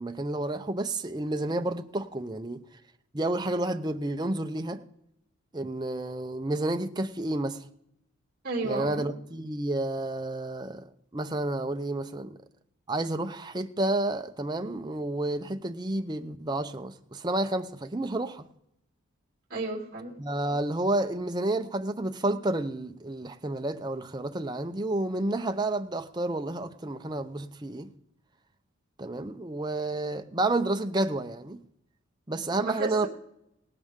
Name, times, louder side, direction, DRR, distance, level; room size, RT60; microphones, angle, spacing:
voice 1, 0.0-2.6 3.1-4.8 5.5-7.7 8.6-10.9 11.1-12.4 12.9-18.5 20.2-27.9 29.0-31.6 32.3-33.1, right 2 dB, 20° right, 0.6 m, -30 dB
voice 2, 8.4-9.0 19.5-20.2 32.6-33.1, right 2 dB, 40° right, 2.8 m, -32 dB
18.0 x 11.5 x 3.7 m
head